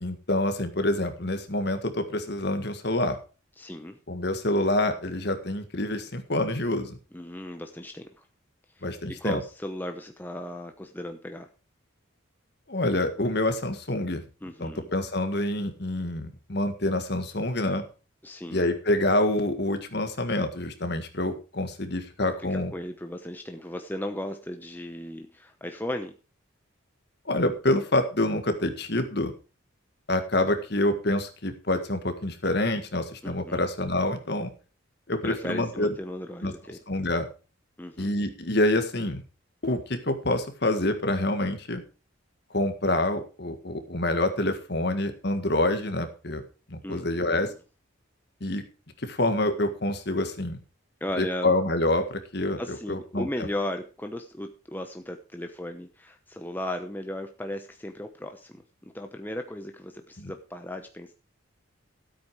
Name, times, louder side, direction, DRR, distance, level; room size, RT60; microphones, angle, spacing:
voice 1, 0.0-3.2 4.1-7.0 8.8-9.4 12.7-14.2 14.6-17.8 18.5-22.7 27.3-29.3 30.1-34.5 35.1-35.9 36.4-36.5 36.9-37.3 38.0-39.2 39.6-41.8 42.5-46.4 46.7-47.5 48.4-48.6 49.0-50.6 51.2-53.3 60.2-60.3, left 1 dB, 50° left, 7 dB, 1.8 m, -27 dB
voice 2, 3.6-4.0 7.1-8.2 8.8-11.5 14.4-14.9 18.2-18.7 22.4-26.1 33.2-33.6 35.2-36.8 37.8-38.1 46.8-47.5 51.0-51.5 52.6-61.1, left 1 dB, 10° left, 5 dB, 0.9 m, -36 dB
13.0 x 8.6 x 4.8 m, 0.33 s
head